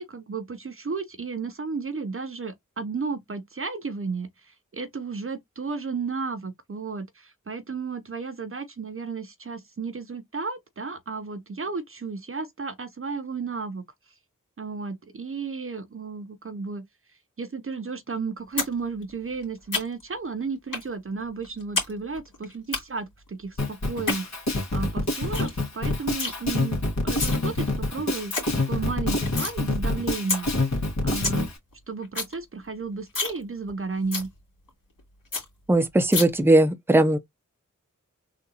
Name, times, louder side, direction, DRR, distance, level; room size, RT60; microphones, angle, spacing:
voice 1, 0.0-13.8 14.6-16.8 17.4-31.5 31.9-34.3, right 4 dB, 40° right, 0.7 m, -33 dB
sound 1, 18.6-18.7 19.0-20.1 20.7-20.9 21.2-21.9 22.2-22.8 23.8-24.2 24.7-24.8 25.0-25.1 25.3-25.6 25.8-26.3 27.0-27.4 27.8-27.9 28.1-28.4 28.8-29.6 29.9-30.0 30.3-30.4 30.8-30.9 31.1-31.4 31.7-31.8 32.0-32.3 32.7-32.8 33.1-33.4 33.7-33.8 34.1-34.3 34.7-34.8 35.0-35.1 35.3-35.4 36.1-36.2, left 4 dB, 80° left, 2.1 m, -28 dB
Drum kit, 23.6-31.5, left 2 dB, 60° left, 1.7 m, -26 dB
voice 2, 35.7-37.2, right 1 dB, 5° right, 0.7 m, -19 dB
3.8 x 2.5 x 2.8 m
cardioid pair, 40°, 32 cm